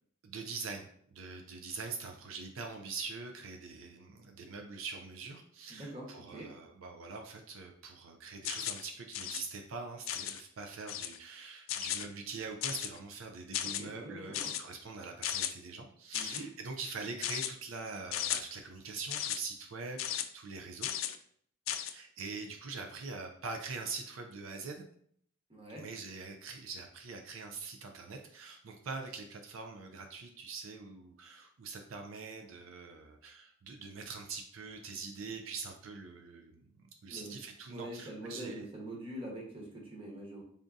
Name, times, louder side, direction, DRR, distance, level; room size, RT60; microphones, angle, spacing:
voice 1, 0.2-20.9 21.7-24.8 25.8-38.7, right 4 dB, 80° right, 4 dB, 0.5 m, -44 dB
voice 2, 5.7-6.5 13.8-14.5 16.1-16.4 25.5-25.8 37.1-37.3 37.7-40.4, right 1 dB, 25° right, -2 dB, 1.1 m, -44 dB
sound 1, 8.4-8.9 9.1-9.4 10.1-10.4 10.9-11.2 11.7-12.1 12.6-13.0 13.5-13.8 14.3-14.6 15.2-15.5 16.1-16.4 17.2-17.5 18.1-18.4 19.1-19.4 20.0-20.2 20.8-21.1 21.7-21.9, left 11 dB, 80° left, 0.3 m, -35 dB
3.8 x 3.5 x 2.5 m, 0.62 s
head